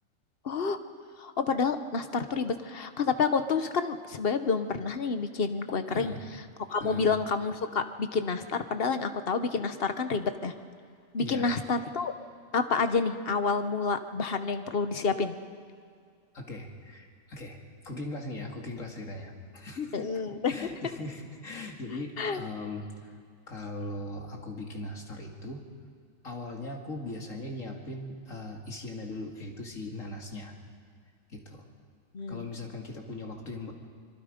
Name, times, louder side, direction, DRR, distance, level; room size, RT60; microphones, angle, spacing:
voice 1, 0.4-0.8 1.2-6.1 6.7-10.5 11.1-12.1 12.5-15.4 19.9-20.5 22.2-22.4 32.1-32.4, left 5 dB, 50° left, 9 dB, 1.2 m, -29 dB
voice 2, 5.9-6.2 6.8-7.1 11.2-11.5 16.3-17.6 17.8-20.1 20.4-23.1 23.5-25.6 26.2-30.6 31.3-31.6 32.3-33.7, left 2 dB, 75° left, 1 dB, 2.7 m, -39 dB
25.0 x 23.0 x 5.2 m, 2.2 s
omnidirectional pair, 1.4 m